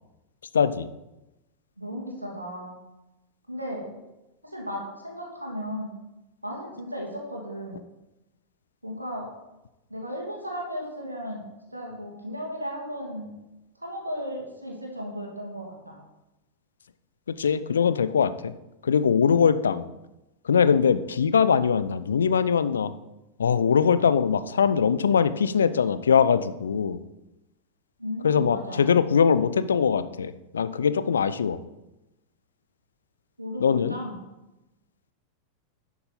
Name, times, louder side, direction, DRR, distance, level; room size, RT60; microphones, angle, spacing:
voice 1, 0.5-0.9 17.4-18.5 18.8-19.9 20.5-22.9 23.4-27.0 28.2-31.6 33.6-34.0, left 6 dB, 70° left, 14 dB, 0.5 m, -22 dB
voice 2, 1.8-2.8 3.5-4.0 4.4-5.9 6.4-7.8 8.8-9.3 9.9-11.4 11.7-13.4 13.8-16.0 28.0-28.9 33.4-34.2, equal, 85° right, -1 dB, 2.6 m, -35 dB
11.0 x 6.9 x 4.2 m, 0.98 s
figure-of-eight pair, 90°, 0 cm